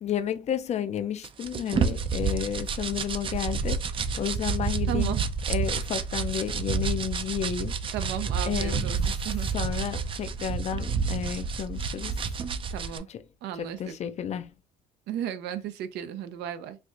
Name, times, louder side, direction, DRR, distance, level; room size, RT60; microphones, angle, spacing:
voice 1, 0.0-3.8 4.2-5.2 5.5-7.7 8.0-8.1 8.5-9.2 9.5-12.2 13.1-13.2 13.5-14.5, left 9 dB, 40° left, 0.4 m, -32 dB
sound 1, 1.2-13.0, right 5 dB, 30° right, 0.4 m, -29 dB
voice 2, 4.9-5.2 7.9-9.0 9.2-9.5 12.7-13.1 13.4-13.9 15.1-16.8, right 10 dB, 85° right, 0.6 m, -34 dB
4.4 x 2.5 x 2.4 m
cardioid pair, 110°, 17 cm